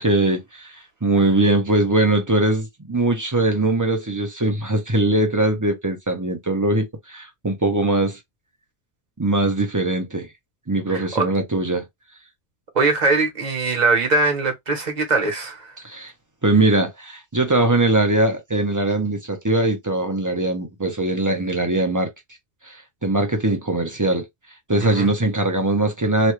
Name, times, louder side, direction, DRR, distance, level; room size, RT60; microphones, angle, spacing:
voice 1, 0.0-8.2 9.2-10.3 10.7-11.8 15.8-16.1 16.4-22.1 22.6-24.3 24.7-26.3, right 2 dB, 25° right, 0.5 m, -21 dB
voice 2, 10.9-11.3 12.7-15.8 24.8-25.1, right 3 dB, 40° right, 1.0 m, -21 dB
3.1 x 2.2 x 3.0 m
omnidirectional pair, 1.1 m